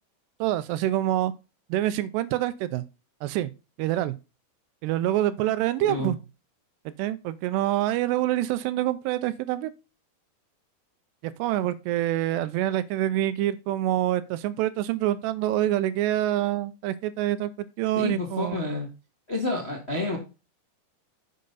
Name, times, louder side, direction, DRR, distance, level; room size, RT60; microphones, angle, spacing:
voice 1, 0.4-1.3 1.7-2.8 3.2-3.5 3.8-4.2 4.8-6.2 6.9-9.7 11.2-18.6, right 13 dB, 80° right, 2.6 m, -26 dB
voice 2, 18.0-18.9 19.3-20.2, left 2 dB, 75° left, 0.6 m, -29 dB
10.0 x 6.6 x 4.0 m
omnidirectional pair, 5.0 m